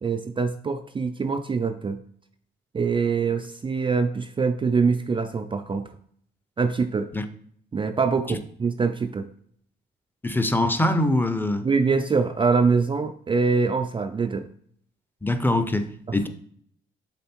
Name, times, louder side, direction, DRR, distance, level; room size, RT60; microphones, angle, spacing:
voice 1, 0.0-2.0 2.7-5.9 6.6-7.1 7.7-9.3 11.6-14.5 16.1-16.3, right 5 dB, 25° right, 0.4 m, -24 dB
voice 2, 10.2-11.7 15.2-16.3, left 1 dB, 10° left, 0.7 m, -23 dB
7.0 x 3.7 x 4.4 m
cardioid pair, 90°, 20 cm